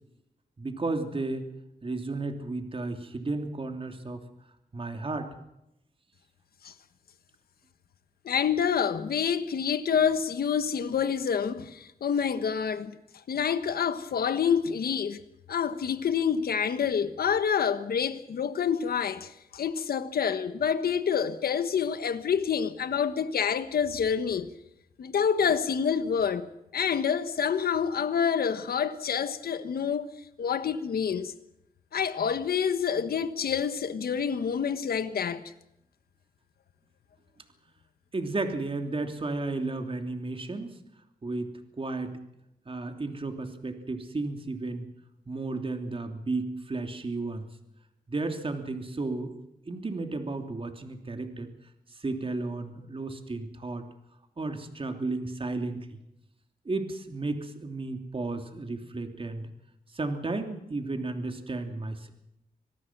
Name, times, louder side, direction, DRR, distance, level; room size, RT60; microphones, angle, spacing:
voice 1, 0.6-1.5 1.8-4.2 4.7-5.3 38.1-40.7 41.2-42.2 42.6-44.9 45.3-47.5 48.1-51.5 51.9-53.8 54.4-56.0 56.6-59.5 59.9-62.1, right 3 dB, 35° right, 3.1 m, -33 dB
voice 2, 8.2-12.9 13.3-15.2 15.5-24.5 25.0-26.5 26.7-30.1 30.4-31.3 31.9-35.4, left 7 dB, 85° left, 1.4 m, -27 dB
26.0 x 19.0 x 6.1 m
cardioid pair, 85°, 15 cm